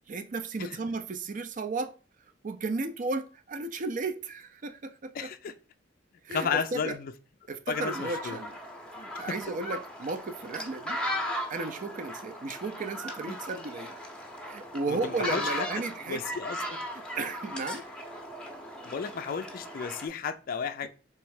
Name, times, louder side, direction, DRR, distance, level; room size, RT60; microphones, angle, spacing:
voice 1, 0.1-1.9 2.4-5.3 6.2-7.0 7.5-8.6 8.9-11.0 11.5-14.0 14.5-16.2 16.9-17.8, right 3 dB, 45° right, 0.5 m, -34 dB
voice 2, 5.1-5.5 6.3-7.1 7.7-8.4 9.1-9.2 14.9-15.7 16.1-16.8 18.8-20.9, left 6 dB, 50° left, 0.3 m, -33 dB
sound 1, 7.7-20.1, equal, 5° left, 0.7 m, -37 dB
3.4 x 3.1 x 4.7 m
head